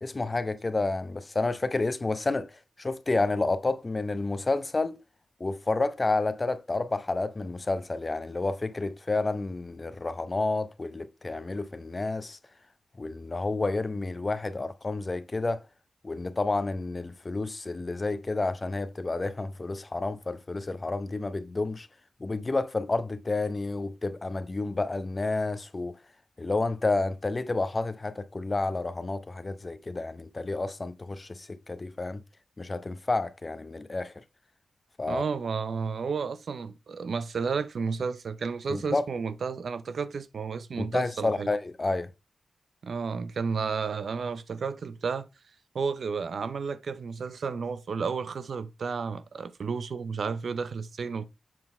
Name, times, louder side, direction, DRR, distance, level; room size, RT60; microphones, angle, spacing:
voice 1, 0.0-5.0 5.4-12.4 13.0-15.6 16.0-21.9 22.2-26.0 26.4-32.2 32.6-34.1 35.0-35.2 38.7-39.0 40.8-42.1, left 3 dB, 30° left, 0.7 m, -30 dB
voice 2, 35.1-41.5 42.8-45.3 45.7-51.3, right 5 dB, 70° right, 0.6 m, -32 dB
7.6 x 4.0 x 4.3 m
wide cardioid pair, 90°, 0 cm